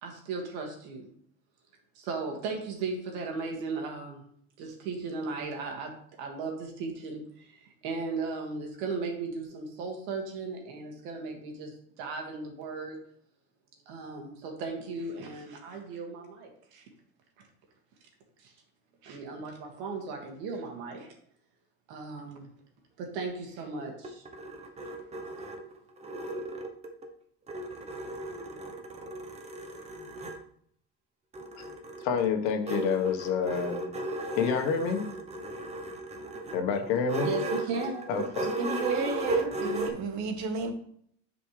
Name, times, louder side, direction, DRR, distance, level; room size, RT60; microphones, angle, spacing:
voice 1, 0.0-1.1 2.0-4.2 4.6-13.0 13.9-16.8 18.4-18.5 19.0-21.1 21.9-22.5 23.0-24.2 37.2-38.1, right 4 dB, 80° right, 2.2 m, -36 dB
sound 1, 23.8-27.1 27.5-30.4 31.3-39.9, right 2 dB, 20° right, 0.9 m, -36 dB
voice 2, 32.0-33.9 34.4-35.0 36.5-37.3 38.1-38.4, left 6 dB, 80° left, 1.4 m, -28 dB
voice 3, 38.6-40.7, right 4 dB, 60° right, 1.5 m, -32 dB
9.5 x 5.2 x 3.3 m
cardioid pair, 140°, 33 cm